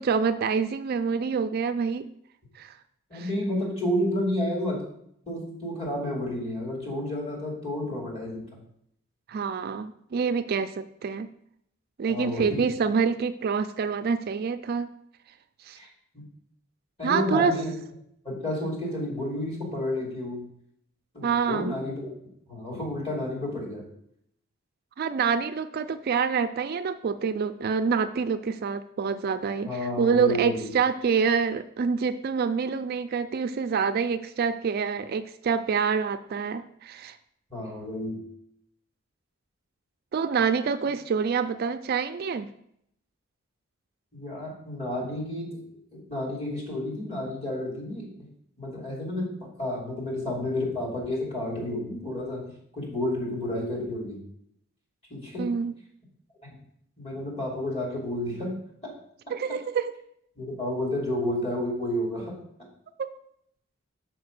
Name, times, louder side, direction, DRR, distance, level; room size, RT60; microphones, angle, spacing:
voice 1, 0.0-2.1 2.5-2.7 3.1-3.3 9.3-11.3 12.0-14.9 15.6-15.8 17.0-17.5 21.2-21.8 25.0-37.2 40.1-42.5 55.4-55.7 59.3-59.9 63.0-63.1, right 6 dB, 50° right, 10 dB, 0.3 m, -26 dB
voice 2, 3.1-4.8 5.3-8.6 12.1-12.7 15.7-15.9 16.1-16.2 17.0-17.7 18.2-20.5 21.1-22.1 22.5-23.9 29.6-30.7 37.5-38.2 44.1-45.6 45.9-48.1 48.6-54.2 55.1-55.5 57.0-58.9 60.4-62.4, left 1 dB, 30° left, -3 dB, 2.7 m, -31 dB
6.0 x 4.9 x 6.5 m, 0.72 s
head